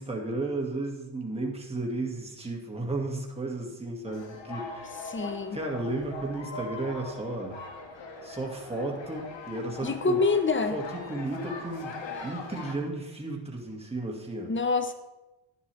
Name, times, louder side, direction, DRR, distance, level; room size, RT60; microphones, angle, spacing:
voice 1, 0.0-7.6 8.2-10.2 10.7-11.9 12.2-14.5, right 2 dB, 10° right, -1 dB, 2.3 m, -34 dB
sound 1, 4.1-12.7, left 3 dB, 60° left, 2.0 m, -41 dB
voice 2, 5.1-5.6 9.8-10.8 14.5-14.9, left 4 dB, 25° left, 9 dB, 1.0 m, -26 dB
11.5 x 10.5 x 3.5 m, 1.0 s
cardioid pair, 80°, 50 cm